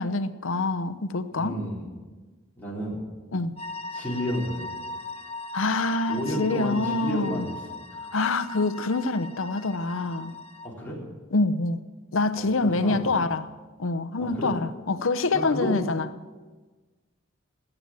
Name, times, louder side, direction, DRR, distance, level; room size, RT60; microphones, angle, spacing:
voice 1, 0.0-1.6 3.3-3.6 5.5-7.5 8.1-10.3 11.3-11.8 12.1-13.5 13.8-16.1, left 3 dB, 65° left, 12 dB, 0.8 m, -26 dB
voice 2, 1.3-1.9 2.6-3.0 3.9-4.7 6.1-7.5 10.6-11.0 12.3-12.4 12.8-13.1 14.2-14.6 15.3-15.8, equal, 10° left, -6 dB, 4.1 m, -31 dB
sound 1, 3.6-10.7, left 2 dB, 30° left, 1.0 m, -39 dB
18.0 x 9.0 x 7.4 m, 1.3 s
head